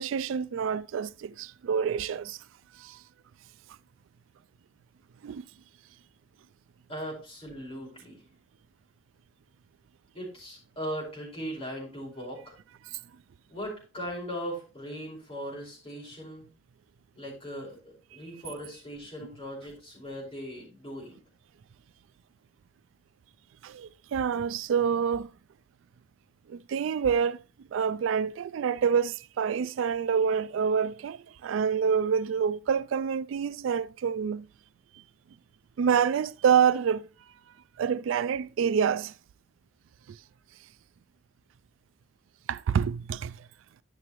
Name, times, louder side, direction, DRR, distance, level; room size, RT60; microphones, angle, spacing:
voice 1, 0.0-2.4 2.8-3.0 5.2-5.5 23.6-25.3 26.5-34.5 35.8-37.1 37.8-39.1 40.1-40.2 42.5-43.5, right 7 dB, 80° right, 0.3 m, -27 dB
voice 2, 6.9-8.2 10.1-12.5 13.5-16.5 17.1-21.2, equal, 30° left, 4.9 m, -39 dB
11.0 x 6.8 x 3.0 m
head